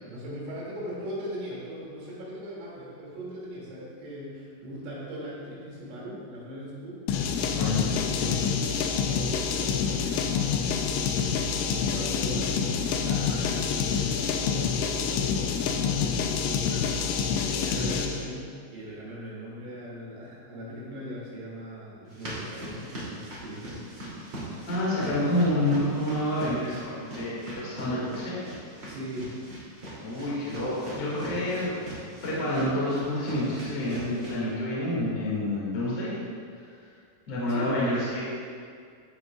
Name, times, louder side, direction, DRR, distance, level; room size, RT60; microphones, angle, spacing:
voice 1, 0.0-7.0 7.9-11.1 11.7-17.0 17.4-23.8 28.9-29.4 31.2-31.6 37.5-37.8, equal, 75° right, -6 dB, 5.2 m, -39 dB
sound 1, 7.1-18.2, left 6 dB, 80° left, 2.9 m, -27 dB
voice 2, 7.4-8.4 24.6-28.4 30.0-31.8 32.2-36.2 36.5-36.9 37.3-38.2, left 1 dB, 45° left, -8 dB, 2.0 m, -28 dB
sound 2, 22.1-34.4, right 1 dB, 30° right, 2.4 m, -40 dB
15.0 x 9.9 x 2.4 m, 2.2 s
omnidirectional pair, 6.0 m